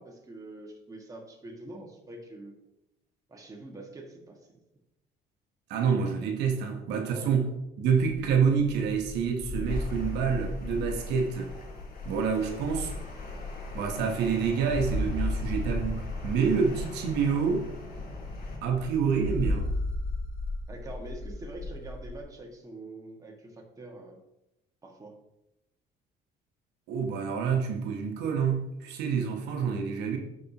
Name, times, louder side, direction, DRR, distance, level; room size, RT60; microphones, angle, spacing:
voice 1, 0.0-2.6 3.3-4.6 6.7-6.8 7.1-7.3 20.7-24.2 24.8-25.2, right 2 dB, 20° right, 1.7 m, -45 dB
voice 2, 5.7-7.5 7.8-11.5 12.0-12.9 13.7-17.7 18.6-19.7 26.9-30.2, right 6 dB, 85° right, 1.1 m, -27 dB
sound 1, 8.0-22.2, left 2 dB, 35° left, 2.8 m, -35 dB
sound 2, 9.7-18.6, left 2 dB, 65° left, 2.5 m, -46 dB
12.0 x 4.9 x 2.9 m
cardioid pair, 110°, 17 cm